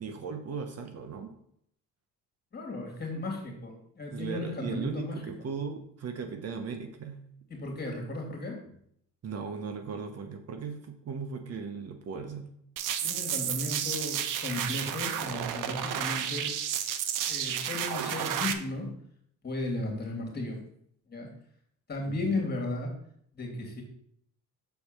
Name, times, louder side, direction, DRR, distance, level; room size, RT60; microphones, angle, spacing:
voice 1, 0.0-1.3 4.1-7.2 9.2-12.5 22.1-22.5, right 5 dB, 45° right, 7 dB, 1.1 m, -37 dB
voice 2, 2.5-5.2 7.5-8.6 13.0-16.5 17.3-18.9 19.4-20.6 21.1-21.3 21.9-22.9 23.3-23.8, left 2 dB, 30° left, 1 dB, 2.9 m, -35 dB
sound 1, 12.8-18.5, right 9 dB, 65° right, 0.9 m, -32 dB
7.0 x 4.3 x 6.7 m, 0.69 s
cardioid pair, 110°, 34 cm